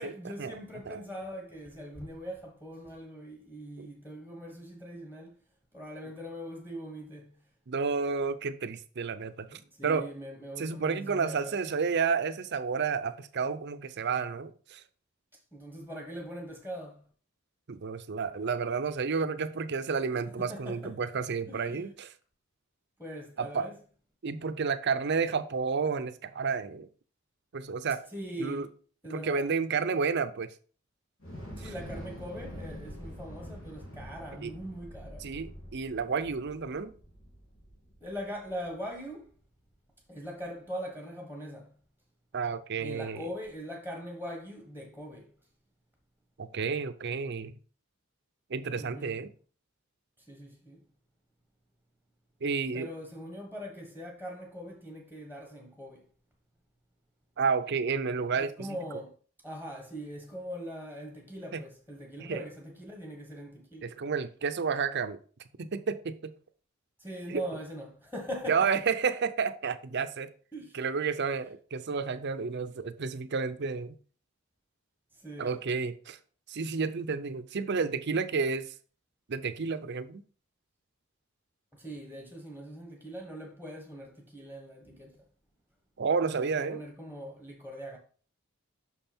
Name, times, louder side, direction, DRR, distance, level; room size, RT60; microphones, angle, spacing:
voice 1, 0.0-5.4 5.7-7.3 9.5-11.6 15.5-17.0 20.1-20.9 21.5-21.9 23.0-23.8 28.1-28.7 29.0-29.5 31.6-35.3 38.0-39.3 40.1-41.7 42.8-45.3 48.8-49.2 50.2-50.8 52.7-56.0 58.2-59.1 59.4-63.9 67.0-68.7 70.5-70.8 75.1-75.6 81.7-85.2 86.3-88.0, equal, 10° left, 1.3 m, -41 dB
voice 2, 7.7-10.1 10.6-14.8 17.7-22.1 23.4-23.7 24.2-26.9 27.5-28.0 28.4-28.7 29.1-30.5 34.4-34.5 35.2-36.9 42.3-43.3 46.4-47.5 48.5-49.3 52.4-52.9 57.4-58.7 61.5-61.6 62.2-62.4 63.8-65.2 65.6-66.3 67.3-67.4 68.5-70.3 70.7-73.9 75.4-76.2 76.5-78.7 79.3-80.2 86.0-86.8, right 5 dB, 55° right, 0.6 m, -31 dB
Thunder / Explosion, 31.2-39.4, equal, 80° left, 2.3 m, -46 dB
6.2 x 5.5 x 4.3 m
head